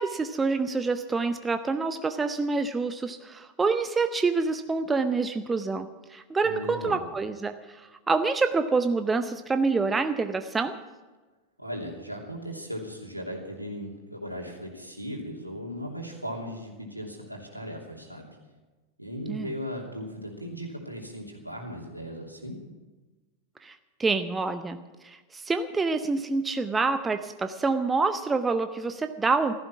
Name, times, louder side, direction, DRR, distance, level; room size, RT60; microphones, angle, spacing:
voice 1, 0.0-10.8 19.3-19.5 23.6-24.8 25.0-29.5, right 4 dB, 15° right, 9 dB, 0.8 m, -27 dB
voice 2, 6.4-6.9 11.6-18.3 19.0-22.6, equal, 90° right, 0 dB, 3.0 m, -37 dB
15.5 x 14.0 x 6.0 m, 1.2 s
figure-of-eight pair, 90°, 0 cm